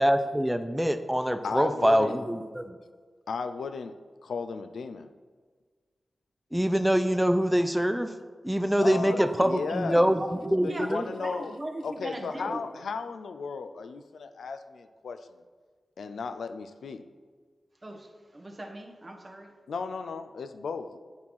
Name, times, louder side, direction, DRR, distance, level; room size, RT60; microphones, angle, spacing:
voice 1, 0.0-2.8 6.5-8.1 8.4-11.1, equal, 5° right, 9 dB, 0.6 m, -24 dB
voice 2, 1.4-2.2 3.3-5.1 8.8-10.0 10.6-11.5 11.8-15.4 16.0-17.0 19.7-21.0, left 5 dB, 85° left, 9 dB, 0.4 m, -35 dB
voice 3, 9.0-12.7 17.8-19.5, right 1 dB, 40° right, 3 dB, 1.3 m, -39 dB
8.6 x 4.5 x 5.5 m, 1.5 s
cardioid pair, 40°, 0 cm